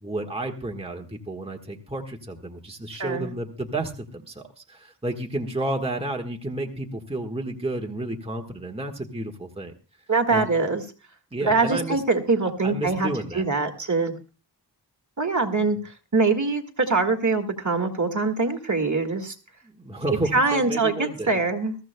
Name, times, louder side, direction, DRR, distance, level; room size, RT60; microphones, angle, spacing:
voice 1, 0.0-9.7 10.3-10.5 11.3-12.0 12.6-13.4 19.6-21.4, right 1 dB, 15° right, 1 dB, 1.5 m, -31 dB
voice 2, 3.0-3.3 10.1-10.8 11.4-14.1 15.2-19.4 20.3-21.8, right 3 dB, 45° right, 5 dB, 1.9 m, -23 dB
21.5 x 14.5 x 2.2 m, 0.33 s
wide cardioid pair, 80°, 42 cm